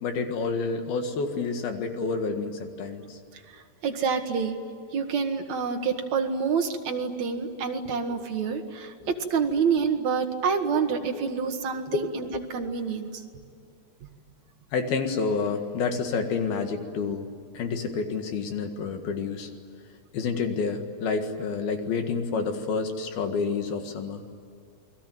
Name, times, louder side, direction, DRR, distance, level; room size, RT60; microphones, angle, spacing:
voice 1, 0.0-3.2 7.9-8.0 8.4-8.6 9.0-9.1 11.1-11.3 11.9-12.4 14.7-17.3 17.5-19.5 20.1-24.2, left 4 dB, 70° left, 5 dB, 3.6 m, -29 dB
voice 2, 3.8-4.5 4.9-13.1, right 6 dB, 50° right, 4 dB, 2.7 m, -27 dB
29.5 x 21.5 x 9.3 m, 2.3 s
omnidirectional pair, 4.7 m